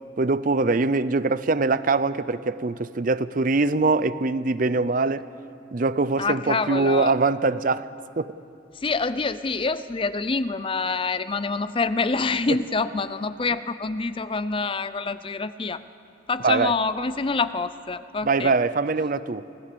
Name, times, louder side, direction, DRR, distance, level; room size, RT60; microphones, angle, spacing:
voice 1, 0.2-5.3 5.7-7.9 8.2-8.3 16.4-16.7 18.2-19.4, right 3 dB, 45° right, 15 dB, 0.5 m, -23 dB
voice 2, 6.2-7.1 8.8-15.8 16.3-18.5, left 4 dB, 30° left, 14 dB, 0.5 m, -26 dB
26.0 x 17.5 x 6.8 m, 2.6 s
head